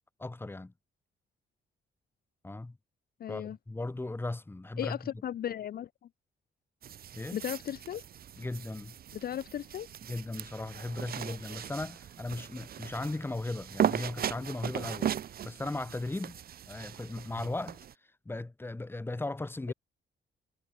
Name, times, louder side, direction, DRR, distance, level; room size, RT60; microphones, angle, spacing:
voice 1, 0.2-0.7 2.4-2.8 3.3-5.0 7.1-7.4 8.4-9.0 10.1-15.1 15.4-16.4 16.7-17.8 18.3-19.7, left 2 dB, 10° left, 1.9 m, -37 dB
voice 2, 3.2-3.6 4.8-5.9 7.3-8.0 9.1-9.9, left 10 dB, 50° left, 0.6 m, -36 dB
sound 1, 6.8-17.9, right 9 dB, 45° right, 0.8 m, -37 dB
wide cardioid pair, 170°, 21 cm